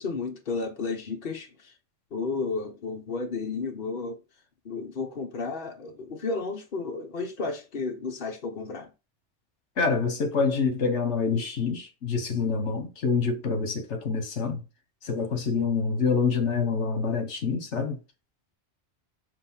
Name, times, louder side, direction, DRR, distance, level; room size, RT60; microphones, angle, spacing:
voice 1, 0.0-1.5 2.1-4.2 4.6-8.9, left 4 dB, 50° left, 1.4 m, -32 dB
voice 2, 9.8-14.6 15.0-18.0, left 5 dB, 80° left, 1.5 m, -26 dB
6.7 x 3.3 x 5.6 m
omnidirectional pair, 1.2 m